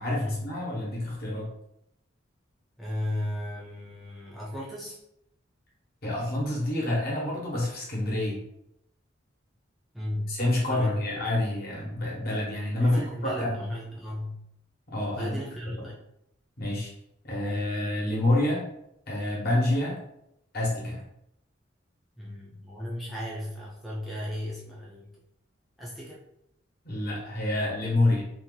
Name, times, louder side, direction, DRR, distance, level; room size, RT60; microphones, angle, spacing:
voice 1, 0.0-1.5 6.0-8.4 10.3-13.6 14.9-15.4 15.8-15.9 16.6-16.9 17.2-18.6 19.1-20.0 20.5-21.0 26.8-28.3, left 1 dB, 55° left, -4 dB, 1.1 m, -28 dB
voice 2, 2.8-5.0 9.9-10.4 10.7-11.0 12.8-14.4 15.2-16.0 22.2-25.1 25.8-26.2, left 1 dB, ahead, -7 dB, 0.5 m, -35 dB
2.8 x 2.5 x 3.8 m, 0.79 s
head